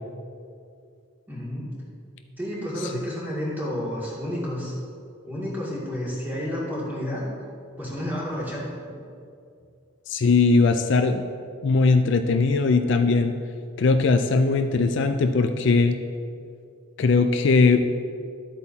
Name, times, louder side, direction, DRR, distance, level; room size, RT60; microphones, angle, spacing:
voice 1, 1.3-1.7 2.4-4.8 5.3-7.3 7.8-9.0, equal, 10° right, -7 dB, 2.2 m, -30 dB
voice 2, 10.1-11.2 11.6-13.3 13.8-16.0 17.0-17.8, left 4 dB, 60° left, 7 dB, 0.4 m, -20 dB
12.0 x 8.2 x 2.8 m, 2.4 s
head